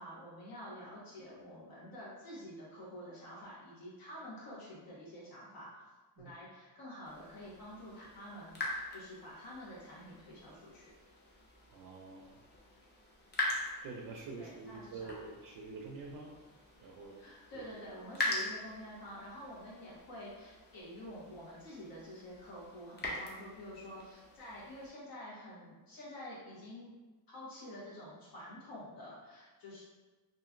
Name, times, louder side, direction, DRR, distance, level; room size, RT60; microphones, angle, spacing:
voice 1, 0.0-5.8 6.2-10.9 14.4-15.1 17.2-26.9 27.3-29.8, equal, 65° left, -6 dB, 1.3 m, -48 dB
sound 1, 7.0-24.9, left 2 dB, 30° left, 0.5 m, -43 dB
voice 2, 11.7-12.4 13.8-16.3 16.8-17.3 17.5-17.6, right 4 dB, 60° right, -1 dB, 0.4 m, -47 dB
2.9 x 2.5 x 2.5 m, 1.2 s
cardioid pair, 125°, 38 cm